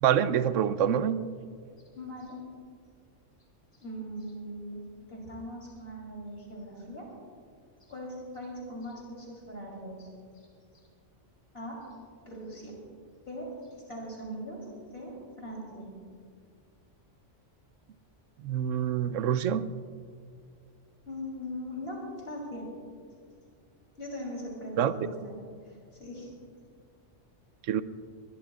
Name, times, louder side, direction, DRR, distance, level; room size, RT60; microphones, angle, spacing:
voice 1, 0.0-1.2 18.4-19.6 24.8-24.9 27.7-27.8, right 9 dB, 90° right, 13 dB, 1.0 m, -26 dB
voice 2, 1.9-2.4 3.7-7.1 7.9-10.1 10.3-10.5 11.5-11.8 12.3-12.8 13.3-14.7 14.9-16.0 21.1-22.7 24.0-25.3 25.7-26.3, equal, 50° left, -3 dB, 3.6 m, -40 dB
22.0 x 21.0 x 2.4 m, 2.2 s
omnidirectional pair, 1.3 m